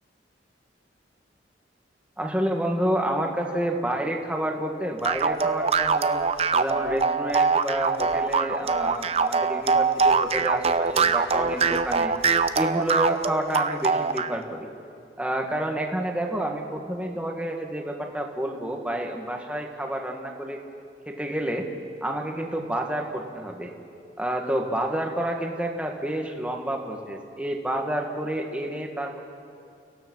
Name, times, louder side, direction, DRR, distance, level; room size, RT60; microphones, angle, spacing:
voice 1, 2.2-6.2 6.5-12.1 12.5-14.7 15.2-20.6 21.1-21.7 22.0-23.7 24.2-29.2, right 1 dB, 5° right, 2 dB, 1.7 m, -29 dB
sound 1, 5.0-14.4, right 5 dB, 35° right, 0.7 m, -23 dB
30.0 x 16.5 x 6.3 m, 2.5 s
head